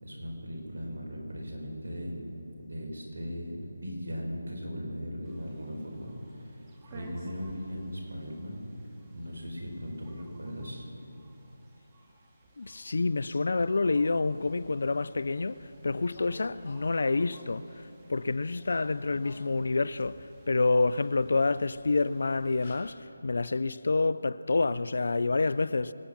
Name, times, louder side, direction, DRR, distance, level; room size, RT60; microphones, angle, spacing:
voice 1, 0.0-6.6 6.8-8.6 9.1-10.9, equal, 65° right, 4.5 m, -38 dB
sound 1, 5.2-22.9, right 2 dB, 20° right, 1.8 m, -57 dB
voice 2, 12.6-15.6 15.8-17.6 18.1-20.2 20.5-25.9, left 3 dB, 60° left, 0.5 m, -28 dB
sound 2, 13.5-14.7 16.1-18.2 18.6-20.1 21.6-21.7 22.1-22.3 22.6-22.7, left 2 dB, 40° left, 3.9 m, -53 dB
25.5 x 8.5 x 5.9 m
figure-of-eight pair, 160°, 0 cm